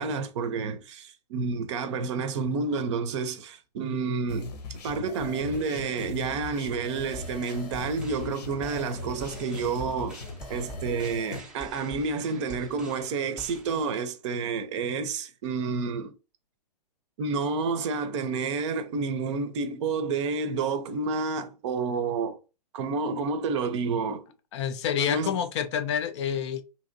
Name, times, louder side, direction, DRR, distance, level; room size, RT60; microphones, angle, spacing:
voice 1, 0.0-10.2 10.5-16.1 17.2-22.4 22.7-24.2 25.1-25.4, right 4 dB, 45° right, 0.6 m, -29 dB
sound 1, 4.3-11.4, left 3 dB, 75° left, 0.9 m, -39 dB
sound 2, 7.1-13.8, right 1 dB, 5° right, 0.6 m, -46 dB
voice 2, 24.5-26.6, left 8 dB, 45° left, 0.5 m, -28 dB
2.9 x 2.8 x 2.6 m
hypercardioid pair, 125°, 21 cm